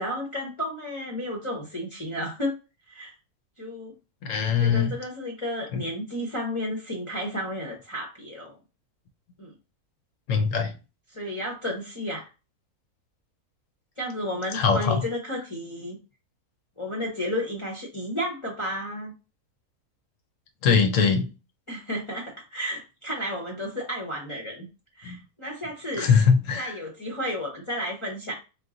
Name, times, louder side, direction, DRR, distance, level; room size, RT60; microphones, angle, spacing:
voice 1, 0.0-2.6 2.9-3.1 3.6-4.0 4.6-8.6 9.4-9.5 11.1-12.3 14.0-16.0 16.8-19.1 21.7-24.7 25.0-26.1 26.6-28.3, equal, 25° left, 0.7 m, -32 dB
voice 2, 4.2-5.0 5.7-5.8 10.3-10.7 14.5-15.0 20.6-21.3 25.0-25.2 26.0-26.8, left 6 dB, 65° left, 0.9 m, -22 dB
3.9 x 2.5 x 3.7 m
omnidirectional pair, 1.6 m